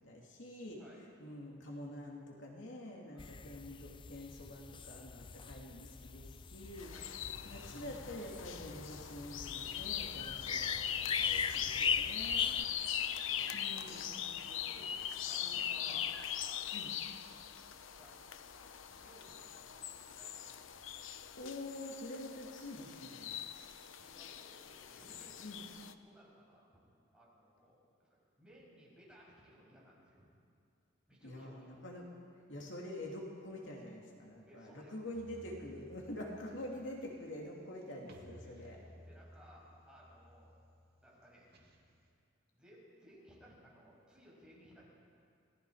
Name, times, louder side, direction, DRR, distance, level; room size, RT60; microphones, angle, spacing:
voice 1, 0.0-0.8 1.2-6.9 7.5-12.5 13.5-14.2 15.8-16.0 16.7-16.9 21.3-23.3 25.4-25.6 31.2-32.1 32.5-38.8, left 1 dB, 70° left, -1 dB, 2.9 m, -46 dB
voice 2, 0.8-1.1 3.1-3.3 6.9-7.2 10.0-10.1 11.1-11.3 12.3-13.0 13.2-16.2 16.4-17.0 18.0-18.2 18.5-20.8 24.0-25.6 26.0-26.8 27.1-30.3 31.1-31.7 34.4-35.3 38.4-40.6 41.0-41.8 42.5-44.8, equal, 5° right, -6 dB, 6.8 m, -60 dB
sound 1, 3.2-12.6, left 6 dB, 25° left, 0.4 m, -40 dB
sound 2, 6.8-25.9, left 10 dB, 85° left, 0.8 m, -41 dB
sound 3, 35.1-42.1, equal, 55° right, 2.5 m, -58 dB
27.0 x 19.0 x 5.0 m, 2.4 s
head